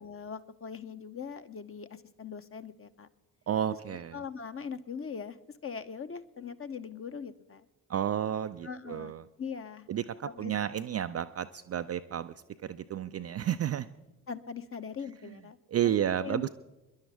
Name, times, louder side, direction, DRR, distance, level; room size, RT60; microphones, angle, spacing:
voice 1, 0.0-3.1 4.1-5.4 5.6-7.7 8.6-9.9 10.2-10.5 14.3-15.6 15.8-16.5, left 6 dB, 30° left, 10 dB, 0.9 m, -41 dB
voice 2, 3.5-4.2 7.9-9.2 9.9-12.3 12.6-13.9 15.7-16.5, right 10 dB, 35° right, 10 dB, 0.5 m, -31 dB
28.0 x 11.0 x 3.5 m, 1.0 s
figure-of-eight pair, 40°, 48 cm